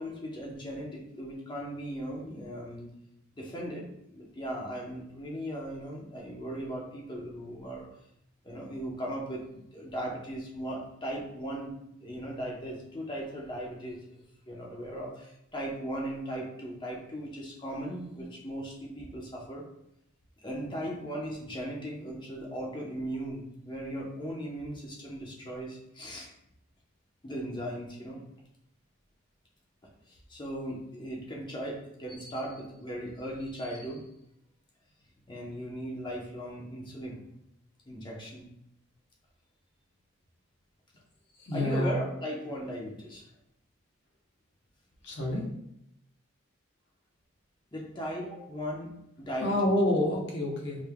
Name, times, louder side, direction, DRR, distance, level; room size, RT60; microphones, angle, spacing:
voice 1, 0.0-2.9 3.3-7.9 8.4-11.7 12.0-19.6 20.4-26.3 27.2-28.2 30.1-34.1 35.3-37.2 37.8-38.5 41.5-43.2 47.7-48.9 49.2-49.7, equal, 25° left, -2 dB, 0.8 m, -38 dB
voice 2, 41.4-42.0 45.0-45.5 49.4-50.8, left 1 dB, 60° left, -2 dB, 1.0 m, -28 dB
5.2 x 3.4 x 2.2 m, 0.80 s
head